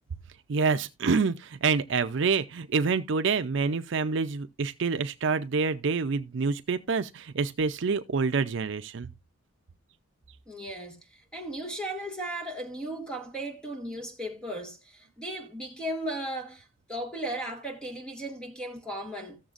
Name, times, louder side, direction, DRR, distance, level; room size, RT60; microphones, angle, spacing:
voice 1, 0.5-9.1, right 4 dB, 65° right, 0.5 m, -27 dB
voice 2, 10.5-19.4, right 1 dB, 5° left, 1.7 m, -36 dB
15.0 x 7.1 x 2.5 m
head